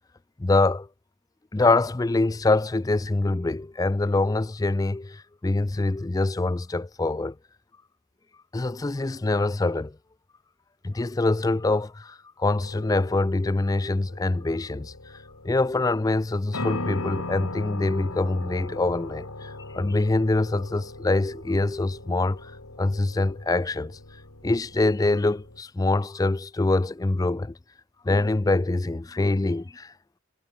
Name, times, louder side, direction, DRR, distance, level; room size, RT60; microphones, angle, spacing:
voice 1, 0.4-0.9 1.5-7.4 8.5-10.0 10.8-15.1 15.4-22.5 22.8-24.0 24.4-27.6 28.0-29.9, left 2 dB, 15° left, 0.3 m, -24 dB
sound 1, 12.6-25.6, left 2 dB, 90° left, 3.3 m, -39 dB
head